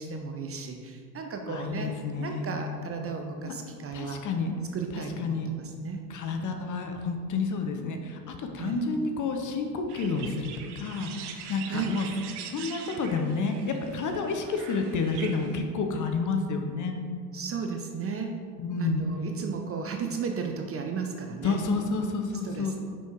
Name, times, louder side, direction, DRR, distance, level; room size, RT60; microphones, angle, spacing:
voice 1, 0.0-4.2 4.7-6.1 8.6-8.8 11.7-12.0 17.3-18.4 18.8-21.6 22.4-22.8, right 5 dB, 30° right, 4 dB, 0.7 m, -34 dB
voice 2, 1.5-2.6 3.4-3.5 3.9-4.5 4.9-5.5 6.1-12.1 12.5-16.9 18.6-19.0 21.4-22.7, left 4 dB, 35° left, 4 dB, 1.0 m, -30 dB
sound 1, 9.9-15.6, right 7 dB, 50° right, 0.9 m, -43 dB
6.1 x 5.5 x 4.6 m, 2.1 s
hypercardioid pair, 75°, 50 cm